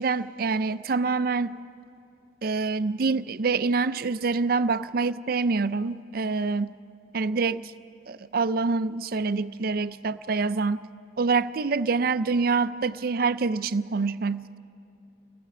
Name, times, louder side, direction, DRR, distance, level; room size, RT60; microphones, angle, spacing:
voice 1, 0.0-1.6 2.4-6.7 7.1-7.7 8.1-10.8 11.2-14.6, right 4 dB, 50° right, 14 dB, 0.5 m, -26 dB
29.5 x 18.5 x 4.9 m, 2.5 s
head